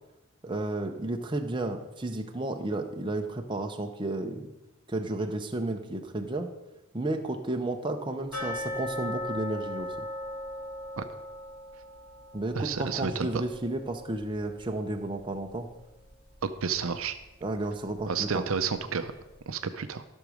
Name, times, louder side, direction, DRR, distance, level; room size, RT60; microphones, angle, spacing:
voice 1, 0.4-4.5 4.9-6.5 6.9-10.1 12.3-15.7 17.4-18.4, right 2 dB, 20° right, 4 dB, 0.7 m, -32 dB
sound 1, 8.3-15.2 15.5-15.6 16.1-16.2 16.7-16.8, left 1 dB, 70° left, 3.8 m, -39 dB
voice 2, 12.5-13.4 16.4-17.1 18.1-19.1 19.5-20.0, right 5 dB, 65° right, 10 dB, 0.6 m, -31 dB
12.5 x 6.3 x 5.0 m, 0.98 s
head